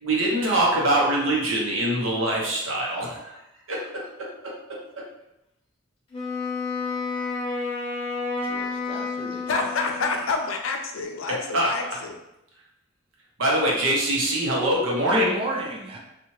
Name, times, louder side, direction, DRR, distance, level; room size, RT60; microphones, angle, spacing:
voice 1, 0.0-3.3 3.7-5.0 11.5-11.9 13.4-15.4, right 1 dB, 80° right, -3 dB, 0.8 m, -24 dB
Wind instrument woodwind instrument, 6.1-10.3, left 4 dB, 30° left, 0.8 m, -30 dB
voice 2, 8.4-9.7 15.0-16.0, left 1 dB, 30° right, 0 dB, 0.5 m, -30 dB
voice 3, 9.5-12.1, left 4 dB, 85° left, 4 dB, 0.4 m, -28 dB
2.8 x 2.4 x 3.0 m, 0.87 s
head